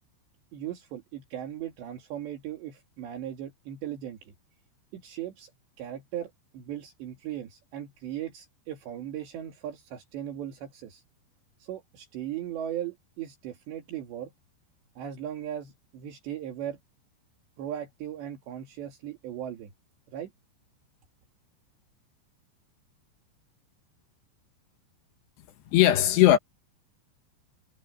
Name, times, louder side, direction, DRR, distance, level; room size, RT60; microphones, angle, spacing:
voice 1, 0.5-4.3 4.9-5.5 5.8-11.0 11.6-14.3 15.0-16.8 17.6-19.7 20.1-20.3, right 11 dB, 70° right, 4.6 m, -38 dB
voice 2, 25.7-26.4, left 13 dB, 75° left, 3.1 m, -18 dB
omnidirectional pair, 5.3 m